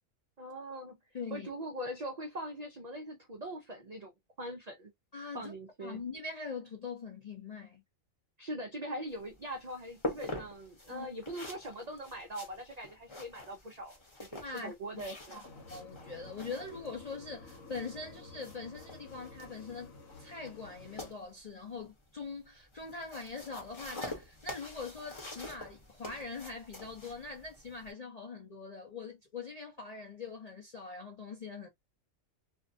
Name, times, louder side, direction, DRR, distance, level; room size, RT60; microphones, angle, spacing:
voice 1, 0.4-1.0 1.3-4.1 4.4-4.9 5.3-6.0 8.4-15.4, right 1 dB, 65° right, 0.4 m, -42 dB
voice 2, 1.1-1.5 5.1-5.5 5.8-7.8 10.9-11.1 14.4-15.0 15.3-15.4 15.7-19.9 20.2-31.7, left 4 dB, 55° left, 0.4 m, -43 dB
sound 1, 9.1-27.9, left 1 dB, 25° left, 0.7 m, -46 dB
sound 2, 15.4-21.1, left 3 dB, 85° left, 1.2 m, -52 dB
2.5 x 2.1 x 2.5 m
omnidirectional pair, 1.4 m